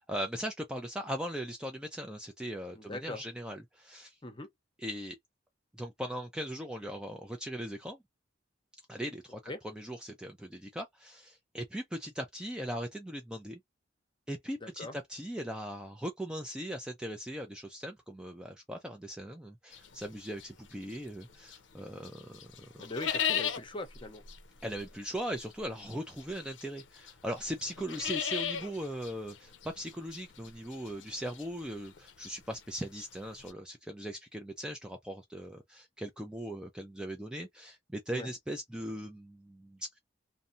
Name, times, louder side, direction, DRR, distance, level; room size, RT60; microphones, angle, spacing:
voice 1, 0.1-4.2 4.8-5.2 5.7-8.0 8.9-13.6 14.3-22.7 24.6-40.0, equal, 5° right, 0.3 m, -39 dB
voice 2, 2.7-3.2 4.2-4.5 9.5-9.6 14.6-14.9 22.8-24.2 38.1-38.3, left 2 dB, 25° left, 0.7 m, -40 dB
sound 1, 19.7-21.7 22.0-33.5, left 8 dB, 75° left, 0.6 m, -38 dB
2.6 x 2.1 x 2.5 m
head